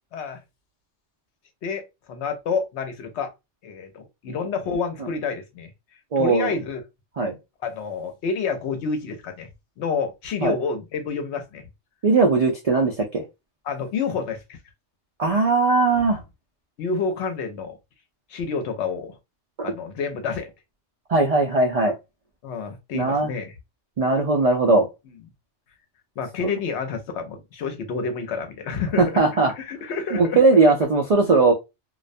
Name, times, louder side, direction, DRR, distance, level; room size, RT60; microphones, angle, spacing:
voice 1, 1.6-3.3 3.6-5.7 6.2-6.8 7.6-9.5 9.8-11.7 13.6-14.6 16.8-17.8 18.3-19.2 19.6-20.5 22.4-23.5 26.2-29.0 29.6-30.4, left 5 dB, 75° left, 0.9 m, -29 dB
voice 2, 6.1-6.5 7.2-7.4 10.4-10.5 12.0-13.2 15.2-16.2 19.6-19.7 21.1-21.9 22.9-23.3 24.0-24.9 26.4-26.5 29.0-29.5 30.1-31.5, right 3 dB, 70° right, 0.3 m, -19 dB
2.3 x 2.1 x 2.5 m
omnidirectional pair, 1.2 m